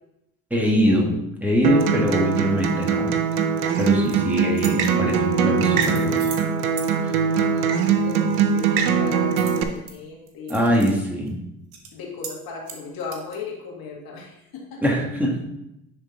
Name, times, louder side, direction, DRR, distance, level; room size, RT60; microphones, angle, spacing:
voice 1, 0.5-3.1 3.8-6.3 10.5-11.4 14.8-15.4, equal, 5° right, -2 dB, 2.0 m, -22 dB
Acoustic guitar, 1.6-9.6, right 6 dB, 85° right, 0.7 m, -22 dB
sound 1, 3.8-4.2 4.5-4.9 5.6-6.5 6.8-6.9 9.4-9.9 10.3-10.9 11.3-11.4 11.7-11.9 12.2-12.4 12.7-13.4, right 7 dB, 60° right, 1.4 m, -38 dB
voice 2, 6.9-10.6 11.9-14.8, left 4 dB, 55° left, -1 dB, 2.1 m, -37 dB
9.8 x 3.7 x 3.9 m, 0.85 s
hypercardioid pair, 55°, 42 cm